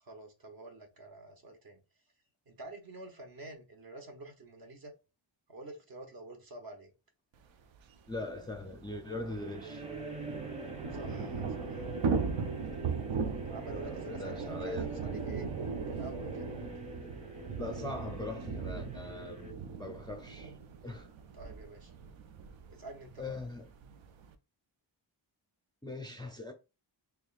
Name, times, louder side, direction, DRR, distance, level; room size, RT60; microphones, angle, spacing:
voice 1, 0.0-1.8 2.5-4.9 5.5-6.9 10.9-11.9 13.5-15.5 15.9-16.6 21.3-21.9 22.7-23.3, right 2 dB, 45° right, 1.0 m, -48 dB
Thunder / Rain, 7.7-7.8 8.1-8.2 8.5-24.3, right 5 dB, 70° right, 0.6 m, -38 dB
voice 2, 8.1-9.9 13.8-14.9 17.6-19.5 19.8-20.5 20.8-21.1 23.2-23.7 25.8-26.5, left 2 dB, 10° left, 0.4 m, -41 dB
sound 1, 8.1-19.5, right 1 dB, 15° right, 0.8 m, -45 dB
3.4 x 3.3 x 2.4 m
wide cardioid pair, 125°, 47 cm